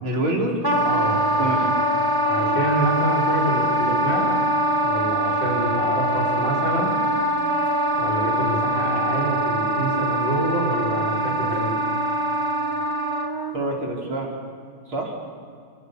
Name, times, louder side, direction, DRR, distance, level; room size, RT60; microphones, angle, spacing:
voice 1, 0.0-0.6 1.4-1.8 13.5-14.3 14.9-15.1, right 1 dB, 75° right, -2 dB, 5.2 m, -26 dB
Wind instrument woodwind instrument, 0.6-13.5, right 1 dB, 10° right, 1.8 m, -23 dB
voice 2, 0.9-1.4 2.2-4.4 4.8-7.0 8.0-11.7, right 1 dB, 60° left, -1 dB, 6.9 m, -27 dB
27.0 x 26.5 x 6.9 m, 2.2 s
omnidirectional pair, 2.3 m